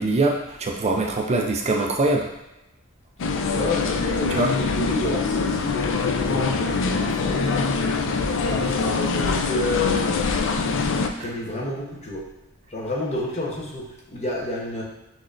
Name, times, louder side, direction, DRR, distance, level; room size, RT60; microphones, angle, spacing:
voice 1, 0.0-2.3 4.3-4.5 11.2-11.3, right 2 dB, 30° right, 1 dB, 0.4 m, -23 dB
sound 1, 3.2-11.1, left 4 dB, 65° left, 0.4 m, -24 dB
voice 2, 3.5-7.6 8.5-10.1 11.2-12.2 12.7-14.8, left 2 dB, 30° left, -2 dB, 0.9 m, -30 dB
5.9 x 3.3 x 2.5 m, 0.92 s
head